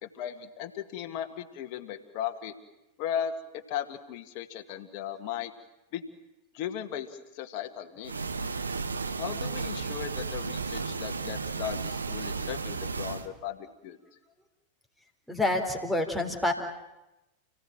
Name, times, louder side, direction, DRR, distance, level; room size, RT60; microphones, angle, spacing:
voice 1, 0.0-2.5 3.0-3.3 3.7-5.5 5.9-6.1 6.5-7.1 7.3-8.1 9.2-14.0, left 10 dB, 45° left, 5 dB, 1.9 m, -36 dB
sound 1, 8.0-13.3, right 4 dB, 75° right, 1.3 m, -34 dB
voice 2, 15.3-16.5, left 2 dB, ahead, 6 dB, 3.8 m, -27 dB
30.0 x 17.0 x 9.0 m, 0.95 s
figure-of-eight pair, 90°, 0 cm